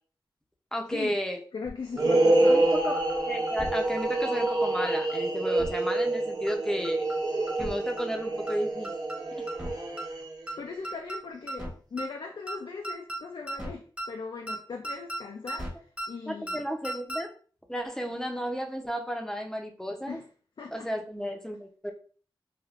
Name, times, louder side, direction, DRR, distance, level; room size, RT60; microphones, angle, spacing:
voice 1, 0.7-1.4 2.5-7.1 7.6-8.9 16.3-17.3 17.7-20.2 20.7-21.9, equal, 5° left, 2 dB, 0.6 m, -33 dB
voice 2, 1.5-2.7 10.6-16.6 20.1-20.2 20.6-20.9, left 4 dB, 65° left, 2 dB, 0.4 m, -39 dB
sound 1, 1.6-1.7 2.0-2.1 2.5-2.6 2.8-3.1 3.5-3.7 4.0-4.1 4.5-4.6 4.8-5.1 5.5-5.7 6.0-6.1 6.5-6.6 6.8-7.2 7.5-7.7 8.0-8.1 8.5-8.6 8.8-9.2 9.5-9.7 10.0-10.1 10.5-10.6 10.8-11.2 11.5-11.7 12.0-12.1 12.5-12.6 12.8-13.2 13.5-13.7 14.0-14.1 14.5-14.6 14.8-15.2 15.5-15.7 16.0-16.1 16.5-16.6 16.8-17.2, right 1 dB, 15° right, 1.0 m, -36 dB
sound 2, 1.9-10.5, right 2 dB, 50° right, 0.7 m, -27 dB
3.3 x 2.4 x 2.4 m, 0.41 s
cardioid pair, 50°, 9 cm